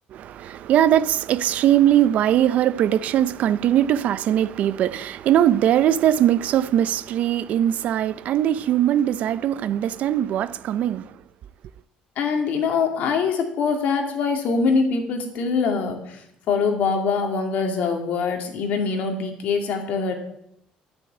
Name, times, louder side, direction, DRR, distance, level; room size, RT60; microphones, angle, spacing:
voice 1, 0.1-11.0, right 11 dB, 55° right, 0.5 m, -20 dB
voice 2, 12.2-16.2 16.5-20.1, left 5 dB, 65° left, 2.3 m, -23 dB
10.0 x 6.3 x 8.9 m
cardioid pair, 135°, 3 cm